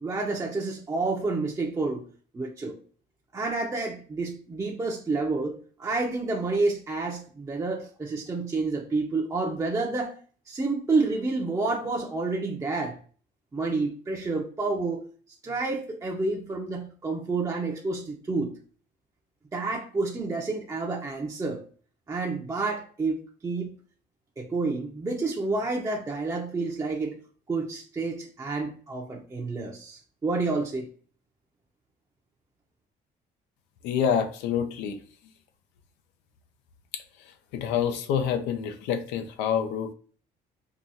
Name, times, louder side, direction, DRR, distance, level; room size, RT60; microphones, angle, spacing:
voice 1, 0.0-2.0 2.3-2.7 3.3-10.1 10.5-13.0 13.5-15.0 15.4-18.5 19.5-21.6 22.1-23.7 24.4-27.2 27.5-30.9, right 3 dB, 20° right, 0.6 m, -29 dB
voice 2, 33.8-35.0 36.9-37.0 37.5-39.9, left 8 dB, 90° left, 0.5 m, -27 dB
4.7 x 2.3 x 2.7 m
cardioid pair, 110°, 17 cm